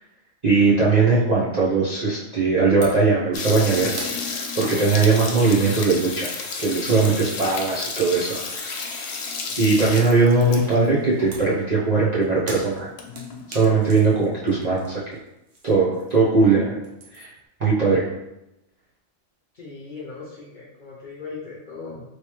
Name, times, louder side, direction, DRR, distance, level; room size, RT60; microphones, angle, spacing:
voice 1, 0.4-4.0 4.6-6.3 6.6-8.8 9.6-12.9 13.5-15.2 15.6-16.7 17.1-17.3 17.6-18.1, right 4 dB, 45° right, -8 dB, 0.5 m, -20 dB
sound 1, 2.8-3.1 3.4-7.9 8.2-9.0 11.3-16.4 16.7-17.5, right 2 dB, 65° right, 1.0 m, -42 dB
sound 2, 3.3-10.9 11.2-11.3 11.5-11.6 12.2-12.3 12.6-13.6, left 4 dB, 90° left, 1.0 m, -32 dB
voice 2, 19.5-22.0, left 4 dB, 50° left, -5 dB, 0.6 m, -38 dB
3.2 x 3.1 x 3.0 m, 0.91 s
omnidirectional pair, 1.4 m